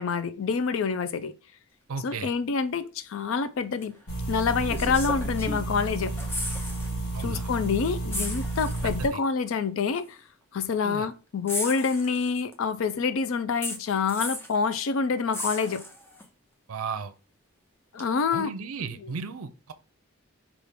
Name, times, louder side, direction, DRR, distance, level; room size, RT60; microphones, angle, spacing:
voice 1, 0.0-1.3 2.0-4.0 4.3-6.1 7.2-10.2 10.5-15.8 17.9-18.5 19.0-19.1, left 5 dB, 65° left, 0.4 m, -27 dB
voice 2, 1.9-2.3 7.1-7.5 8.8-9.2 10.8-11.1 16.7-17.1 18.3-19.7, right 5 dB, 80° right, 0.5 m, -35 dB
sound 1, 3.8-4.0 4.7-5.8 6.1-6.9 7.2-7.4 8.1-9.0 10.0-10.1 11.5-12.5 13.6-14.6 15.3-16.2 18.0-18.1, left 1 dB, 10° left, 0.6 m, -35 dB
sound 2, 4.1-9.1, right 2 dB, 90° left, 1.4 m, -31 dB
4.9 x 2.4 x 3.6 m
head